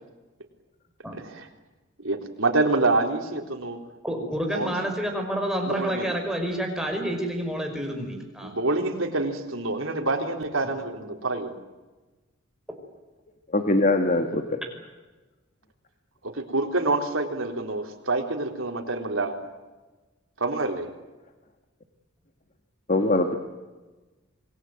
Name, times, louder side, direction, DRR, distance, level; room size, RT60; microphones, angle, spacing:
voice 1, 2.0-3.8 4.5-4.7 5.7-6.2 8.4-11.5 16.2-19.3 20.4-20.9, right 2 dB, 85° right, 4 dB, 3.8 m, -27 dB
voice 2, 4.0-8.5, right 1 dB, 5° right, 2 dB, 5.4 m, -29 dB
voice 3, 13.5-14.6 22.9-23.3, left 2 dB, 40° left, 5 dB, 1.9 m, -22 dB
27.0 x 20.0 x 9.3 m, 1.2 s
head